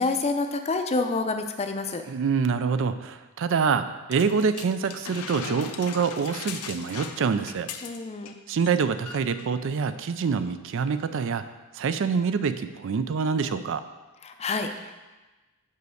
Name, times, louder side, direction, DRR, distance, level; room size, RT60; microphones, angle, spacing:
voice 1, 0.0-2.0 7.8-8.3 14.2-14.9, left 3 dB, 30° left, 6 dB, 0.5 m, -28 dB
voice 2, 2.1-7.7 8.5-11.4 11.7-13.8, right 5 dB, 60° right, 11 dB, 0.4 m, -26 dB
sound 1, 4.1-8.3 8.6-8.8 9.1-9.5 10.2-10.3, left 6 dB, 80° left, 0.6 m, -39 dB
5.5 x 5.3 x 6.3 m, 1.2 s
head